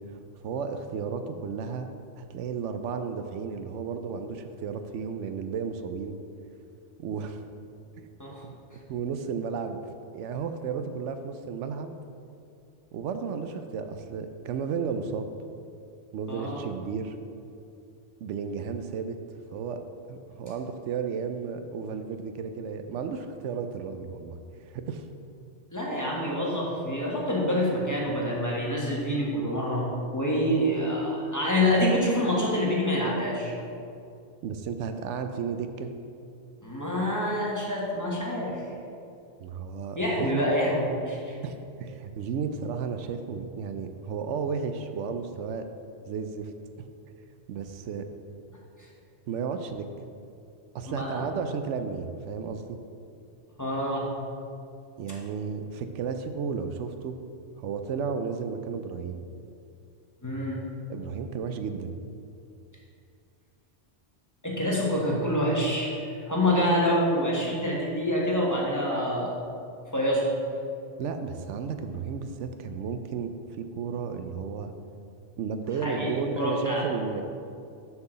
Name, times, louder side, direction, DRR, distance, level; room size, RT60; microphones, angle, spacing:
voice 1, 0.1-1.9 2.2-6.2 7.0-7.4 7.9-8.1 8.4-9.8 10.1-11.9 12.9-15.3 16.1-17.2 18.2-19.2 19.5-19.8 20.1-25.0 34.4-35.9 39.4-40.5 41.4-45.7 46.1-46.5 46.8-46.9 47.5-48.1 49.3-49.9 50.7-52.8 55.0-57.2 57.6-59.2 60.9-61.9 71.0-74.7 75.4-77.2, right 6 dB, 80° right, 8 dB, 0.9 m, -33 dB
voice 2, 16.3-16.6 25.7-33.5 36.6-38.6 40.0-41.4 50.9-51.2 53.6-54.1 60.2-60.6 64.4-66.0 66.3-69.3 69.9-70.3 75.8-76.9, equal, 15° left, -5 dB, 1.4 m, -26 dB
6.8 x 4.7 x 6.6 m, 2.5 s
omnidirectional pair, 1.2 m